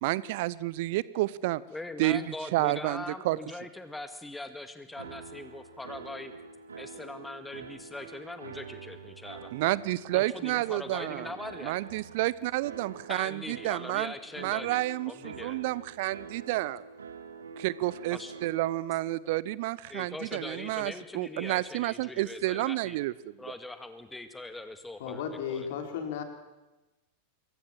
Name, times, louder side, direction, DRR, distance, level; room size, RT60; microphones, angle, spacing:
voice 1, 0.0-1.6 2.0-2.2 2.5-3.4 9.5-11.3 11.6-14.1 14.4-16.8 17.6-23.1, right 17 dB, 50° right, 21 dB, 0.8 m, -30 dB
voice 2, 1.7-6.3 6.7-9.5 10.1-11.8 13.1-14.8 15.1-15.6 18.1-18.6 19.9-23.0 23.4-25.7, left 2 dB, 5° left, 9 dB, 2.0 m, -41 dB
sound 1, 5.0-18.7, right 5 dB, 70° right, 2.3 m, -46 dB
voice 3, 25.0-26.2, left 7 dB, 55° left, 5 dB, 4.7 m, -34 dB
27.0 x 22.5 x 7.6 m, 1.0 s
figure-of-eight pair, 90°, 0 cm